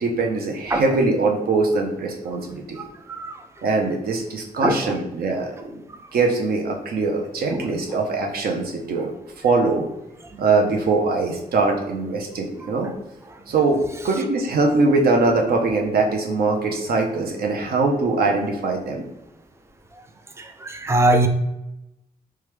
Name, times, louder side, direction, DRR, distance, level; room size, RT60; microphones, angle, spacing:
voice 1, 0.0-2.8 3.6-5.7 6.1-9.1 9.4-9.9 10.4-12.9 13.5-19.0, right 3 dB, 75° right, 1 dB, 0.5 m, -22 dB
voice 2, 2.8-3.4 4.6-5.0 7.5-7.7 10.3-10.4 12.6-12.7 20.4-21.3, right 1 dB, 15° right, 6 dB, 0.4 m, -22 dB
3.0 x 2.2 x 3.2 m, 0.92 s
cardioid pair, 100°, 16 cm